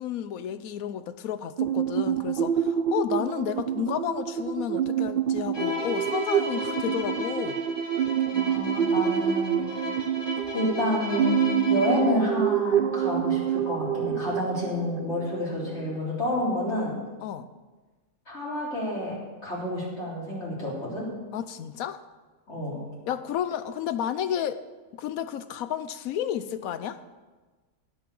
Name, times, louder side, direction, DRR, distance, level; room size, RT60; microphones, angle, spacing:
voice 1, 0.0-7.6 17.2-17.5 21.3-22.0 23.1-24.6 24.9-27.0, left 10 dB, 85° left, 13 dB, 1.1 m, -31 dB
sound 1, 1.6-16.0, right 10 dB, 65° right, 0.5 m, -27 dB
Bowed string instrument, 5.5-12.2, left 3 dB, 20° left, 1.4 m, -34 dB
voice 2, 8.3-9.8 10.5-11.3 11.7-17.0 18.3-19.2 19.4-21.0 22.5-22.8, left 1 dB, 50° left, -6 dB, 4.1 m, -29 dB
17.0 x 6.0 x 7.0 m, 1.3 s
omnidirectional pair, 1.4 m